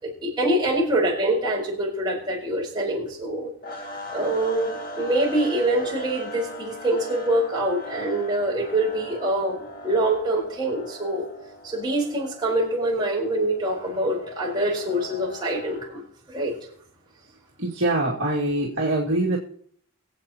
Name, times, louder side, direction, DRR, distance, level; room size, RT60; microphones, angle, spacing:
voice 1, 0.0-3.5 4.1-11.3 11.6-16.0 16.3-16.6, right 1 dB, 20° right, -3 dB, 4.8 m, -25 dB
sound 1, 3.6-16.0, left 1 dB, 40° left, 1.8 m, -40 dB
voice 2, 17.6-19.4, right 1 dB, 55° right, -4 dB, 2.3 m, -24 dB
23.5 x 8.3 x 3.0 m, 0.62 s
head